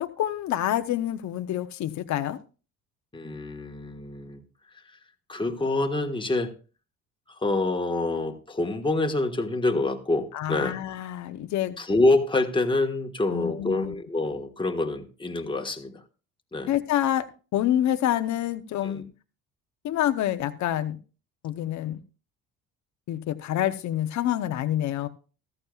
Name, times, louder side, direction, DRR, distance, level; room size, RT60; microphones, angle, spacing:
voice 1, 0.0-2.4 10.3-11.8 13.3-13.9 16.7-17.3 17.5-19.0 19.8-21.0 21.4-22.0 23.1-25.1, left 12 dB, 60° left, 9 dB, 0.8 m, -27 dB
voice 2, 3.1-4.4 4.9-5.0 5.3-6.5 7.4-10.8 11.8-16.0 16.5-16.7 18.8-19.0, left 2 dB, 15° left, 4 dB, 1.4 m, -26 dB
14.5 x 13.0 x 2.3 m, 0.34 s
cardioid pair, 95°, 32 cm